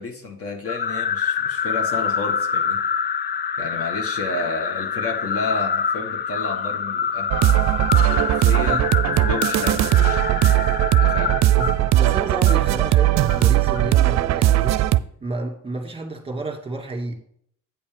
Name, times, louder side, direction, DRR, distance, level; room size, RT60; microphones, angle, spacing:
voice 1, 0.0-2.8 3.6-7.3 8.1-10.2 11.0-11.4, left 3 dB, 50° left, 3 dB, 1.8 m, -31 dB
sound 1, 0.7-14.0, left 7 dB, 35° left, 0.4 m, -26 dB
sound 2, 7.3-15.0, right 14 dB, 65° right, 0.5 m, -18 dB
voice 2, 11.9-14.8 15.2-17.1, right 2 dB, 20° right, 2 dB, 2.2 m, -30 dB
8.7 x 5.4 x 5.1 m, 0.67 s
cardioid pair, 90°, 30 cm